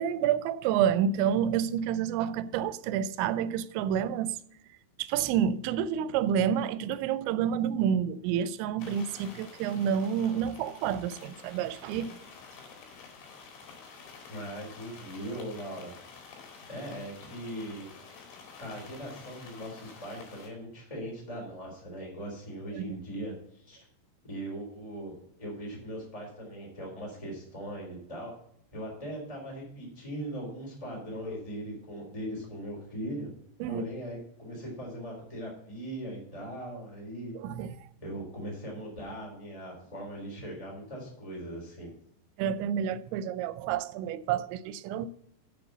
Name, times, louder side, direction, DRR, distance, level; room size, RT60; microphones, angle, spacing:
voice 1, 0.0-4.4 5.0-12.2 22.7-23.0 33.6-33.8 37.4-37.7 42.4-45.1, right 8 dB, 85° right, 2.9 m, -29 dB
sound 1, 8.8-20.5, left 5 dB, 80° left, 4.5 m, -49 dB
voice 2, 14.3-15.9 16.7-17.9 18.6-23.8 24.2-25.1 25.4-28.3 28.7-33.3 33.7-37.3 38.0-41.9, right 1 dB, 10° left, 3.4 m, -39 dB
7.9 x 6.8 x 6.8 m
omnidirectional pair, 5.3 m